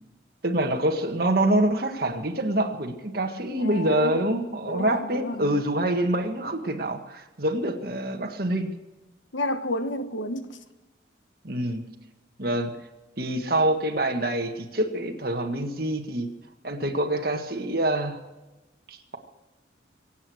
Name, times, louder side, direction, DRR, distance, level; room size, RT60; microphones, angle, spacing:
voice 1, 0.4-8.7 11.4-11.9 12.4-12.7 13.2-16.3 16.6-18.2 18.9-19.2, right 1 dB, 50° right, 1.8 m, -26 dB
voice 2, 3.6-4.2 4.6-5.7 9.3-10.6, left 1 dB, 85° left, 1.3 m, -31 dB
23.0 x 8.9 x 6.5 m
head